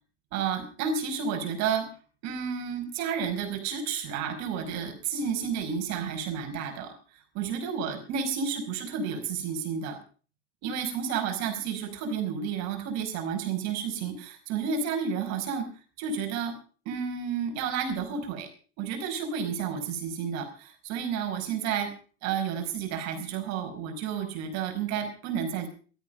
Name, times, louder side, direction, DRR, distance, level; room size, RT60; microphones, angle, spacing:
voice 1, 0.3-1.9 2.2-10.0 10.6-15.7 16.0-16.5 16.8-18.5 18.8-21.9 22.2-25.7, right 6 dB, 50° right, 7 dB, 5.1 m, -31 dB
16.5 x 14.0 x 5.5 m, 0.40 s
figure-of-eight pair, 85°, 36 cm